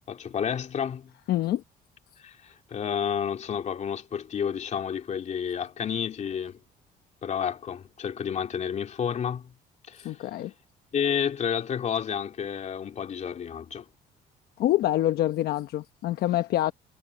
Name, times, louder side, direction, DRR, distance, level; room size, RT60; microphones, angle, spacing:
voice 1, 0.1-1.1 2.2-6.6 7.2-9.5 9.9-10.2 10.9-13.9, left 8 dB, 45° left, 2.7 m, -30 dB
voice 2, 1.3-1.6 10.0-10.5 14.6-16.7, left 14 dB, 70° left, 1.0 m, -26 dB
cardioid pair, 110°, 17 cm